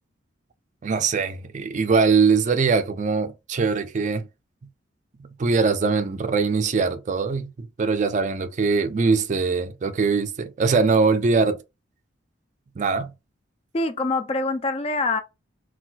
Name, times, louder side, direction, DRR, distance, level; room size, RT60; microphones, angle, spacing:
voice 1, 0.8-4.3 5.2-11.6 12.8-13.1, right 4 dB, 40° right, 0.4 m, -22 dB
voice 2, 13.7-15.2, left 2 dB, 30° left, 0.3 m, -24 dB
4.1 x 2.3 x 2.2 m
head